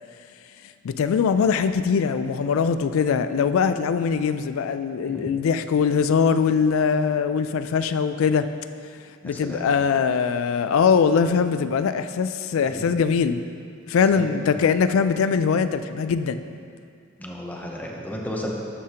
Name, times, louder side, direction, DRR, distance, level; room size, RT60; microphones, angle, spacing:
voice 1, 0.8-8.5 9.2-13.4 13.9-16.4, left 6 dB, 80° left, 11 dB, 0.3 m, -22 dB
voice 2, 9.2-9.7 12.7-12.9 14.1-14.6 17.2-18.5, left 1 dB, 10° left, -1 dB, 0.7 m, -34 dB
12.0 x 4.9 x 2.9 m, 2.3 s
head